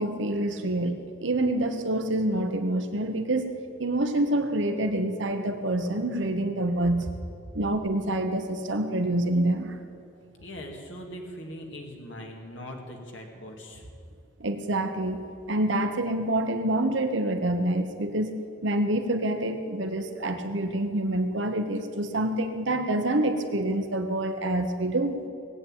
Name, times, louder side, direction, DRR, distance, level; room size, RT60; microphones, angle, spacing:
voice 1, 0.0-3.5 3.8-7.1 7.5-9.8 14.4-18.3 18.6-25.2, right 1 dB, 65° right, 6 dB, 1.1 m, -27 dB
voice 2, 10.4-13.9, equal, 70° left, 1 dB, 2.4 m, -41 dB
18.5 x 8.5 x 9.0 m, 2.5 s
head